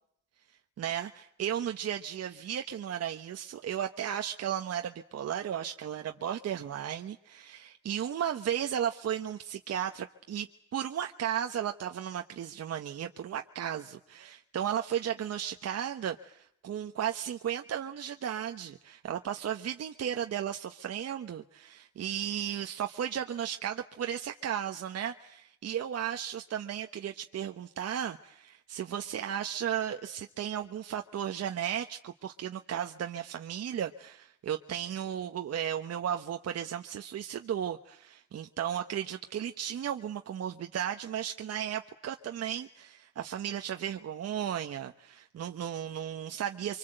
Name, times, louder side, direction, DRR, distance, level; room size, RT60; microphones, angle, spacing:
voice 1, 0.8-10.5 10.7-46.8, right 9 dB, 55° right, 6 dB, 1.1 m, -35 dB
25.0 x 24.5 x 7.9 m, 0.72 s
cardioid pair, 90°, 30 cm